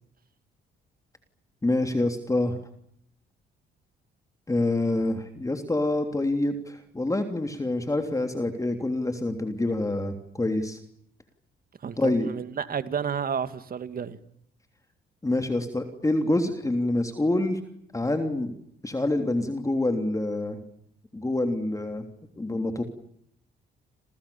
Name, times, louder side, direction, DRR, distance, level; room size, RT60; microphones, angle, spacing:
voice 1, 1.6-2.6 4.5-10.8 12.0-12.3 15.2-17.6 17.9-18.5 18.8-20.6 21.1-22.1 22.4-22.8, left 2 dB, 15° left, 6 dB, 3.3 m, -26 dB
voice 2, 11.8-14.2, right 7 dB, 45° right, 12 dB, 2.2 m, -31 dB
29.5 x 27.5 x 7.2 m, 0.72 s
cardioid pair, 90°, 20 cm